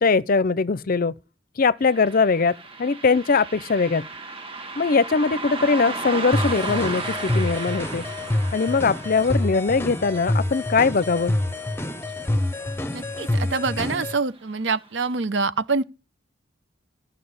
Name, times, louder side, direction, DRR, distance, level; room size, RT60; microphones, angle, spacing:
voice 1, 0.0-1.1 1.6-4.1 4.8-8.0 8.5-11.4, left 4 dB, 50° left, 0.6 m, -21 dB
Car passing by, 1.8-12.6 12.9-13.0 14.0-14.1 14.6-14.7 15.2-15.3, right 3 dB, 30° right, 1.6 m, -35 dB
sound 1, 6.3-14.1, left 1 dB, 15° left, 1.0 m, -27 dB
voice 2, 12.9-15.8, right 4 dB, 70° right, 0.8 m, -25 dB
14.0 x 6.0 x 9.5 m
head